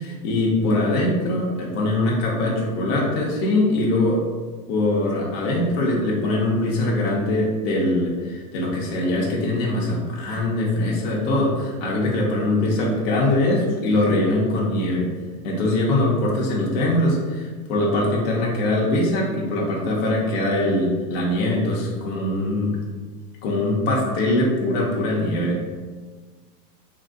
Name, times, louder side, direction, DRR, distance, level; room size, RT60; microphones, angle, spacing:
voice 1, 0.0-4.2 4.7-15.1 15.4-22.7 23.4-25.6, left 1 dB, 40° left, -3 dB, 0.6 m, -22 dB
2.7 x 2.6 x 2.4 m, 1.4 s
supercardioid pair, 145°, 47 cm